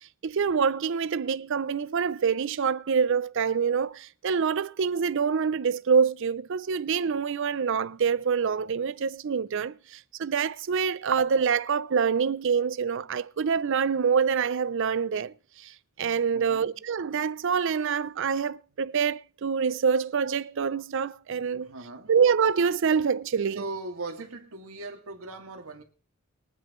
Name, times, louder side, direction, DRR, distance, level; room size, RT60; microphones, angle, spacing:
voice 1, 0.2-9.7 10.2-15.3 16.0-21.7 22.1-23.6, right 6 dB, 60° right, 0.5 m, -26 dB
voice 2, 16.3-16.7 21.6-22.1 23.5-25.8, right 3 dB, 85° right, 2.3 m, -39 dB
23.0 x 9.1 x 3.1 m
head